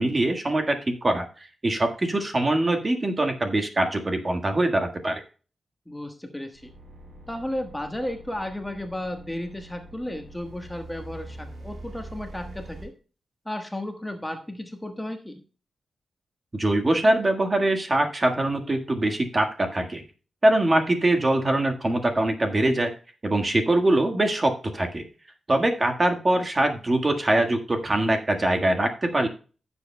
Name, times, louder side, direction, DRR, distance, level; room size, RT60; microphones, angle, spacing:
voice 1, 0.0-5.2 16.5-20.0 20.4-22.9 23.2-25.0 25.5-29.3, right 1 dB, 25° right, 4 dB, 1.6 m, -23 dB
voice 2, 5.9-6.7 7.3-12.9 13.4-15.4, left 1 dB, 10° left, 5 dB, 1.3 m, -34 dB
sound 1, 6.5-12.9, right 1 dB, 70° right, 3.6 m, -44 dB
15.5 x 7.3 x 2.2 m, 0.36 s
wide cardioid pair, 120°, 0 cm